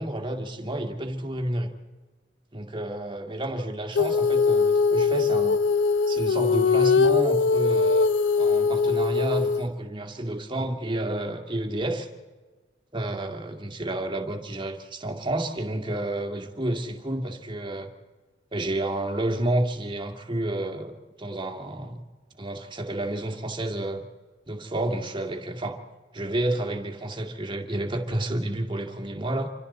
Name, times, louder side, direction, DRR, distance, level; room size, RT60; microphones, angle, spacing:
voice 1, 0.0-1.7 2.5-5.6 6.1-8.1 8.4-12.1 12.9-17.9 18.5-20.9 21.2-22.0 22.4-24.1 24.5-25.8 26.1-29.5, right 1 dB, 25° right, 3 dB, 2.0 m, -30 dB
Female singing, 4.0-9.7, left 4 dB, 75° left, 0.7 m, -21 dB
28.0 x 25.0 x 4.2 m, 1.3 s
head